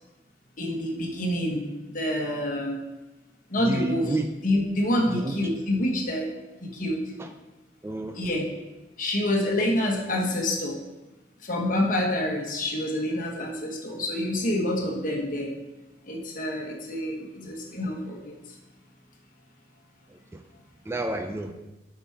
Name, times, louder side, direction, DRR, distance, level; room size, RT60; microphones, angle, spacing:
voice 1, 0.6-1.7 1.9-2.8 3.5-4.1 4.4-6.3 6.6-7.0 8.1-8.5 9.0-10.8 11.4-15.5 16.1-18.3, left 1 dB, 50° left, 0 dB, 1.4 m, -27 dB
voice 2, 3.6-4.3 5.1-5.4 7.2-7.3 7.8-8.2 20.1-20.4 20.9-21.5, right 2 dB, 15° right, 6 dB, 0.4 m, -30 dB
8.1 x 5.9 x 3.5 m, 1.0 s
head